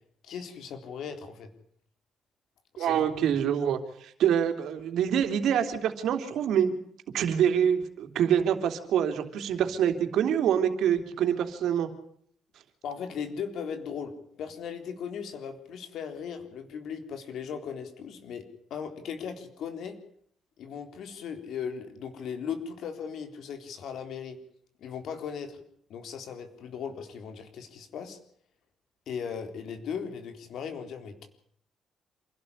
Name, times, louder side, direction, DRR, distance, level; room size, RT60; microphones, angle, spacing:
voice 1, 0.2-1.5 2.7-3.2 12.8-14.1 14.4-18.4 18.7-20.0 20.6-24.4 24.8-25.6 25.9-28.2 29.1-31.3, left 7 dB, 75° left, 7 dB, 3.8 m, -37 dB
voice 2, 2.8-6.7 7.1-11.9, right 9 dB, 75° right, 7 dB, 3.3 m, -26 dB
27.5 x 12.5 x 9.9 m, 0.66 s
cardioid pair, 90°, 0 cm